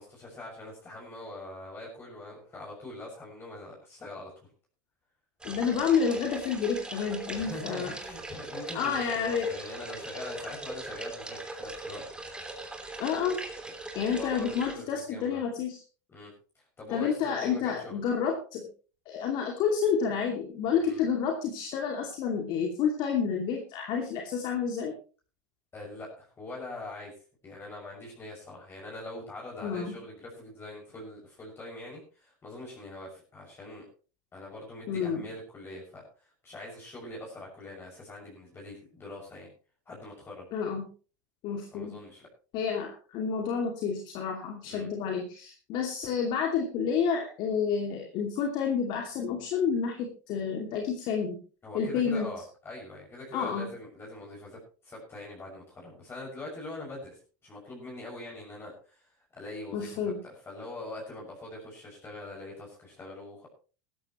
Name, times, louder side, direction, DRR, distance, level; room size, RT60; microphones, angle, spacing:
voice 1, 0.0-4.3 7.3-12.4 14.1-15.4 16.1-18.0 20.8-21.0 25.7-27.1 27.4-33.8 34.3-39.5 39.9-40.4 41.7-42.3 44.6-44.9 51.6-63.5, left 2 dB, 25° left, -2 dB, 6.5 m, -43 dB
voice 2, 5.4-7.9 8.7-9.5 13.0-13.4 13.9-15.8 16.9-18.7 19.1-24.9 29.6-29.9 34.9-35.2 40.5-40.9 41.4-42.0 42.5-51.4 51.7-52.3 53.3-53.7 59.7-60.2, left 6 dB, 55° left, 2 dB, 2.6 m, -29 dB
sound 1, 5.4-14.7, right 2 dB, 10° right, 3.2 m, -40 dB
16.0 x 13.5 x 3.1 m, 0.37 s
hypercardioid pair, 95°, 9 cm